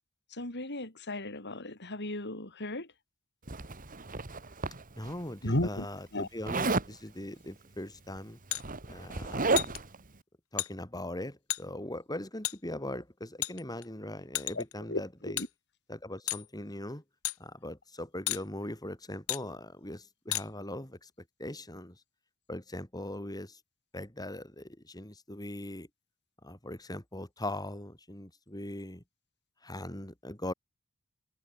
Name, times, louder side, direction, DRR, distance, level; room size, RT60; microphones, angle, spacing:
voice 1, 0.3-2.9 5.4-5.9 6.1-6.3 14.5-15.5, left 1 dB, 50° left, 5.9 m, -35 dB
Zipper (clothing), 3.5-5.1 6.5-6.9 8.1-8.2 8.5-10.0, right 3 dB, 40° right, 2.1 m, -32 dB
voice 2, 4.9-8.4 8.9-9.8 10.5-15.5 15.9-17.0 17.4-21.1 21.4-22.0 22.5-23.6 23.9-25.9 26.4-29.0 29.6-30.5, left 1 dB, 15° left, 4.9 m, -40 dB
sound 1, 8.5-8.6 9.6-9.8 10.6-10.7 11.5-11.6 12.4-12.6 13.4-13.9 14.4-14.7 15.4-15.5 16.3-16.5 17.2-17.4 18.3-18.4 19.3-19.4 20.3-20.5, left 15 dB, 70° left, 2.3 m, -32 dB
head